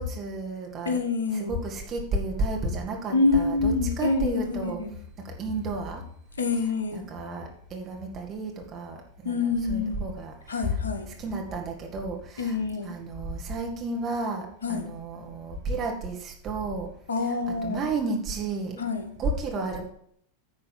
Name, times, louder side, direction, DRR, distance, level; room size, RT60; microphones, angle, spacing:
voice 1, 0.0-1.0 1.3-4.8 5.2-6.0 6.9-10.3 10.6-10.8 11.2-12.6 12.8-16.9 17.6-18.8 19.2-19.9, right 2 dB, 30° right, 2.2 m, -32 dB
voice 2, 0.8-1.6 3.1-5.0 6.4-7.1 9.2-10.1 10.5-11.1 12.4-13.0 14.6-15.0 17.1-17.8 18.8-19.2, left 3 dB, 70° left, 1.0 m, -27 dB
10.0 x 4.1 x 7.4 m
figure-of-eight pair, 90°, 0 cm